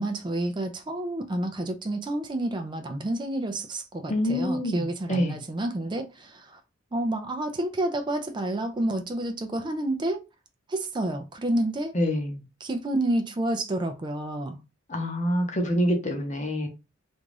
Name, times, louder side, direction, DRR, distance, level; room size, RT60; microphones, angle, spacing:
voice 1, 0.0-6.4 6.9-10.2 10.7-11.9 12.6-14.6, right 1 dB, 25° right, 0.4 m, -29 dB
voice 2, 4.1-5.4 11.9-12.4 14.9-16.7, equal, 35° left, 0.7 m, -26 dB
2.5 x 2.3 x 3.2 m
head